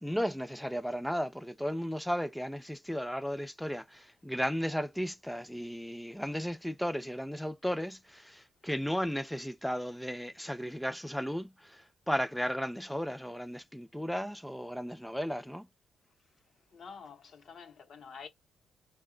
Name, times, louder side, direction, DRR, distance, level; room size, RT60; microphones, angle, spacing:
voice 1, 0.0-15.7, equal, ahead, 0.4 m, -35 dB
voice 2, 16.7-18.3, left 6 dB, 60° left, 0.8 m, -48 dB
3.7 x 2.2 x 3.7 m
cardioid pair, 105°, 0 cm